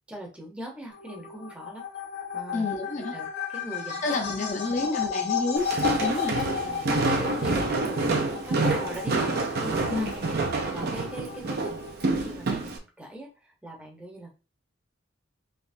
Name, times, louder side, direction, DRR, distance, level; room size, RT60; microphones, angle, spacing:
voice 1, 0.1-1.8 2.3-2.7 3.1-5.1 6.4-10.2 10.7-11.9 12.2-14.3, right 1 dB, 5° right, -1 dB, 0.8 m, -41 dB
sound 1, 0.9-12.2, left 7 dB, 60° left, 1.4 m, -34 dB
voice 2, 2.5-3.1 4.0-5.7 6.0-6.4 9.9-10.1, left 3 dB, 40° left, 1 dB, 0.7 m, -29 dB
Walk footsteps, 5.6-12.8, right 3 dB, 50° right, 0.6 m, -27 dB
3.4 x 3.0 x 2.6 m, 0.33 s
head